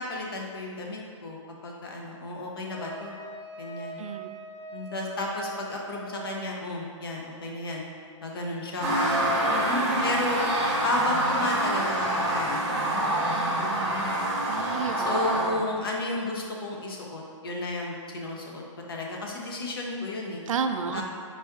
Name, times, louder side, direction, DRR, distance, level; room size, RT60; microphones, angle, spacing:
voice 1, 0.0-3.2 3.6-4.0 4.7-7.9 8.2-8.9 9.5-10.4 10.8-13.2 13.5-14.2 15.0-18.6 18.9-20.4 20.9-21.0, left 2 dB, 45° left, -1 dB, 0.7 m, -33 dB
Wind instrument woodwind instrument, 2.7-6.5, right 2 dB, 30° left, 1.2 m, -42 dB
voice 2, 4.0-4.4 9.7-10.3 13.3-13.9 14.4-15.6 20.5-21.0, right 6 dB, 90° right, 7 dB, 0.4 m, -33 dB
sound 1, 8.8-15.5, right 1 dB, 5° right, 0.4 m, -26 dB
4.6 x 4.1 x 2.3 m, 2.1 s
hypercardioid pair, 175°, 17 cm